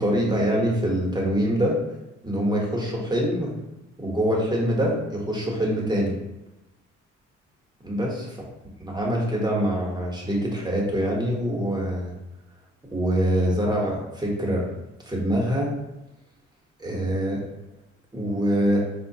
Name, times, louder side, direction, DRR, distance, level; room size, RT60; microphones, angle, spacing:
voice 1, 0.0-1.8 2.2-3.5 4.0-6.2 7.8-8.3 8.9-12.1 12.9-14.7 15.0-15.7 16.8-17.4 18.1-18.8, equal, 15° right, -3 dB, 0.9 m, -24 dB
3.7 x 2.2 x 2.7 m, 0.97 s
cardioid pair, 90°, 30 cm